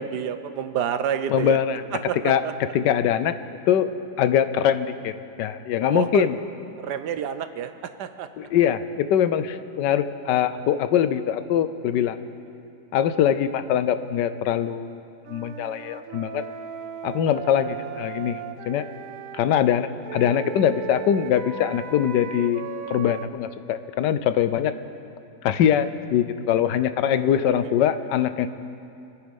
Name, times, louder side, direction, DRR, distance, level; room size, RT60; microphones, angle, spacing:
voice 1, 0.0-1.6 2.1-2.5 5.9-6.3 6.8-7.7 8.0-8.3 27.1-27.8, right 8 dB, 75° right, 10 dB, 1.3 m, -29 dB
voice 2, 1.3-1.8 2.2-2.4 2.7-3.3 3.7-3.9 4.2-5.1 5.4-6.4 8.4-12.2 12.9-15.0 15.3-16.4 17.0-18.9 19.3-22.6 22.9-24.7 25.4-28.5, left 9 dB, 80° left, 12 dB, 1.3 m, -22 dB
Wind instrument woodwind instrument, 15.2-19.4 20.0-23.3, right 7 dB, 60° right, 1.0 m, -37 dB
27.0 x 9.6 x 5.3 m, 2.6 s
omnidirectional pair, 1.9 m